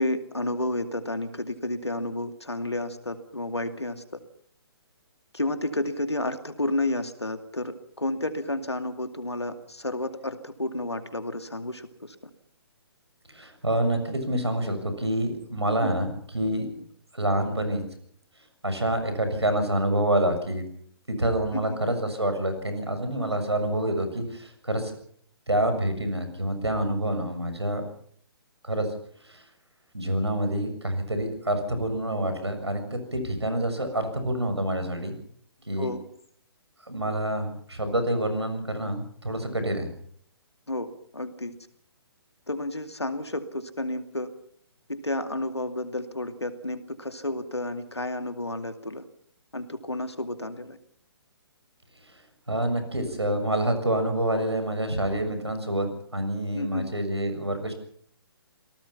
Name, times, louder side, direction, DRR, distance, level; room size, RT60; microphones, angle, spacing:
voice 1, 0.0-4.0 5.3-12.2 15.8-15.9 21.5-21.8 35.8-36.0 40.7-41.6 42.5-44.3 44.9-49.0 49.5-50.8 56.5-56.9, left 1 dB, 85° left, 8 dB, 2.4 m, -31 dB
voice 2, 13.3-16.7 17.1-17.8 18.6-20.7 21.1-24.9 25.5-27.8 28.6-28.9 29.3-29.4 29.9-35.1 35.7-35.9 36.9-39.9 52.5-55.9 56.1-57.7, right 1 dB, 80° right, 8 dB, 6.9 m, -27 dB
27.5 x 18.5 x 5.7 m, 0.62 s
figure-of-eight pair, 130°, 14 cm